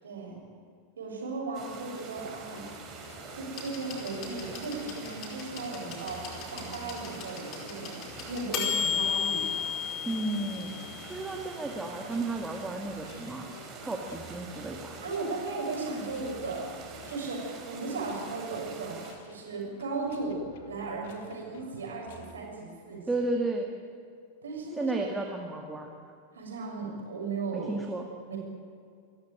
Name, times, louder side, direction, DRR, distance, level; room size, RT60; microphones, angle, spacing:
voice 1, 0.0-0.4 1.0-2.8 3.3-9.6 15.0-16.7 17.1-23.0 24.4-24.9 26.3-27.7 28.3-28.4, right 3 dB, 65° right, 0 dB, 6.7 m, -36 dB
sound 1, 1.5-19.1, right 4 dB, 30° right, 5.2 m, -45 dB
sound 2, 2.5-22.4, left 4 dB, 55° left, 2.5 m, -51 dB
sound 3, 3.5-11.3 12.4-12.5, left 7 dB, 40° left, 4.8 m, -34 dB
voice 2, 10.1-10.7 11.1-15.0 23.1-23.7 24.8-25.9 27.5-28.0, right 2 dB, 10° right, 1 dB, 2.1 m, -33 dB
27.5 x 14.5 x 9.0 m, 2.3 s
figure-of-eight pair, 90°, 0 cm